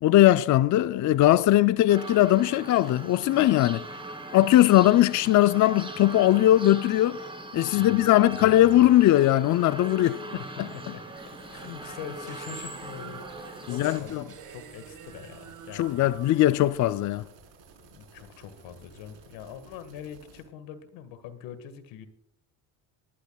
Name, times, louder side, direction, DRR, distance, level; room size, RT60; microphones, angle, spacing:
voice 1, 0.0-3.8 4.3-7.2 7.5-10.2 10.6-10.7 13.7-14.2 15.7-17.2, left 14 dB, 45° left, 0.4 m, -20 dB
sound 1, 1.9-14.0, right 1 dB, 10° right, 2.5 m, -40 dB
voice 2, 7.6-8.9 10.1-10.2 10.6-11.2 11.5-16.0 17.8-22.1, left 8 dB, 85° left, 1.7 m, -43 dB
sound 2, 10.0-17.2, right 8 dB, 45° right, 1.8 m, -48 dB
sound 3, 11.2-20.4, right 5 dB, 80° right, 4.3 m, -54 dB
19.5 x 12.0 x 2.3 m
cardioid pair, 95°, 44 cm